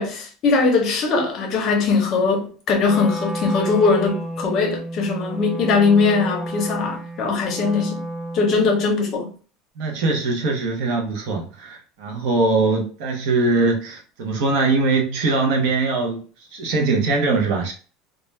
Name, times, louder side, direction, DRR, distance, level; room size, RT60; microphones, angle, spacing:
voice 1, 0.0-8.1 8.3-9.3, left 4 dB, 35° left, 0.6 m, -20 dB
Wind instrument woodwind instrument, 2.8-8.8, right 1 dB, 20° right, 0.5 m, -31 dB
voice 2, 9.8-16.2 16.5-17.7, right 3 dB, 55° right, 0.7 m, -21 dB
2.3 x 2.1 x 3.1 m
cardioid pair, 175°, 0 cm